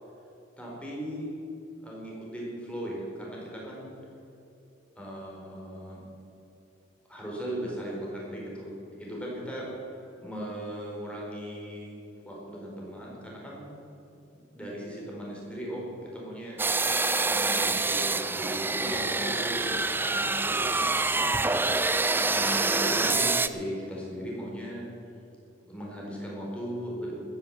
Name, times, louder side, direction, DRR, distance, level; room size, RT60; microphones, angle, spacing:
voice 1, 0.6-1.4 1.8-3.9 5.0-6.0 7.1-11.9 12.2-13.7 14.5-16.6 17.3-21.4 22.3-24.8 25.7-27.2, equal, 5° left, -4 dB, 4.5 m, -37 dB
sound 1, 16.6-23.5, right 3 dB, 10° right, 0.5 m, -26 dB
13.5 x 10.0 x 8.8 m, 2.9 s
head